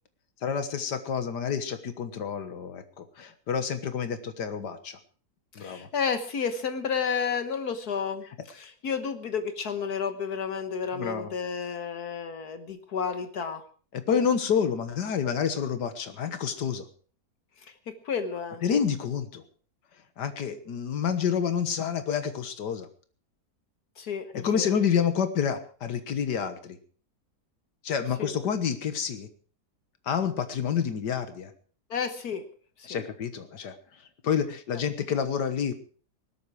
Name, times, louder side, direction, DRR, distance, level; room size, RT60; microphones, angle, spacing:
voice 1, 0.4-5.0 5.6-5.9 10.9-11.3 13.9-16.8 18.6-19.4 20.2-22.9 24.3-26.8 27.8-29.3 30.1-31.5 32.8-35.7, left 7 dB, 85° left, 10 dB, 1.9 m, -28 dB
voice 2, 5.6-13.6 17.6-18.6 24.0-24.7 28.2-28.3 31.9-32.4 32.8-33.1, left 6 dB, 70° left, 9 dB, 1.7 m, -31 dB
19.0 x 12.5 x 4.8 m, 0.42 s
omnidirectional pair, 1.7 m